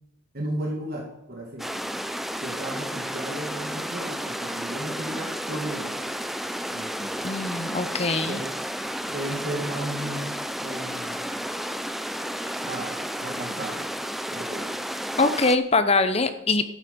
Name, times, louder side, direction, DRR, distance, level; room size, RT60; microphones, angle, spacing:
voice 1, 0.3-1.8 2.4-6.1 6.7-7.3 8.3-8.4 9.1-11.3 12.6-13.9 14.3-14.6, right 1 dB, 45° right, 0 dB, 2.0 m, -35 dB
sound 1, 1.6-15.6, equal, ahead, 0.4 m, -32 dB
voice 2, 7.2-8.4 15.2-16.6, left 3 dB, 30° left, 11 dB, 0.8 m, -23 dB
12.5 x 9.0 x 5.3 m, 0.86 s
head